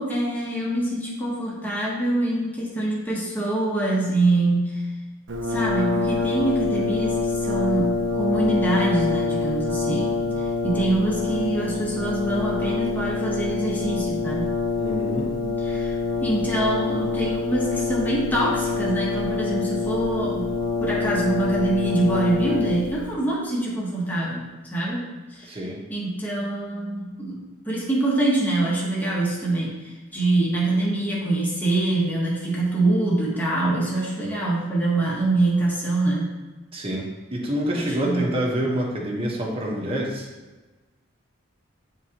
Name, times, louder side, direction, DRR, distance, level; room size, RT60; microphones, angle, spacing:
voice 1, 0.0-4.8 5.5-14.5 15.4-20.4 20.8-25.6 25.9-27.4 27.6-36.3 37.7-38.4, right 2 dB, 10° left, -6 dB, 1.4 m, -25 dB
Brass instrument, 5.3-23.1, left 4 dB, 85° right, 0.8 m, -26 dB
voice 2, 14.8-15.3 25.5-25.8 36.7-40.3, equal, 30° right, -3 dB, 1.2 m, -27 dB
9.3 x 3.7 x 3.0 m, 1.2 s
head